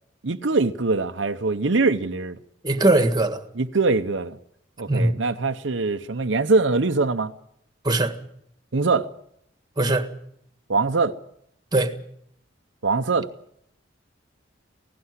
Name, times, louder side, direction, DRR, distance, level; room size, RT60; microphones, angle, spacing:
voice 1, 0.2-2.4 3.6-4.4 4.8-7.3 8.7-9.1 10.7-11.2 12.8-13.3, right 3 dB, 65° right, 0.8 m, -22 dB
voice 2, 2.6-3.4 4.9-5.1 7.8-8.2 9.8-10.1 11.7-11.9, right 2 dB, 20° right, 1.6 m, -20 dB
17.5 x 16.5 x 9.7 m
head